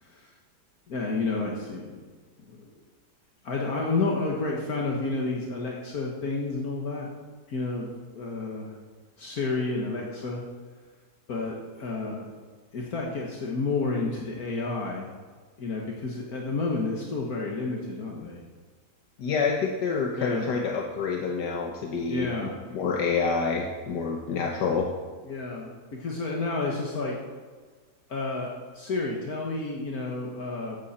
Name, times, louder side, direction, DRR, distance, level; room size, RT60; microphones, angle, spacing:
voice 1, 0.9-2.1 2.4-2.7 3.4-7.1 7.5-8.8 9.2-10.4 11.3-12.3 12.7-15.1 15.6-18.4 20.2-20.5 22.1-22.5 25.2-27.2 28.1-30.8, left 3 dB, 65° left, -1 dB, 1.9 m, -30 dB
voice 2, 19.2-22.3 22.7-24.9, left 5 dB, 85° left, 1 dB, 1.7 m, -27 dB
15.0 x 11.0 x 4.3 m, 1.5 s
omnidirectional pair, 1.7 m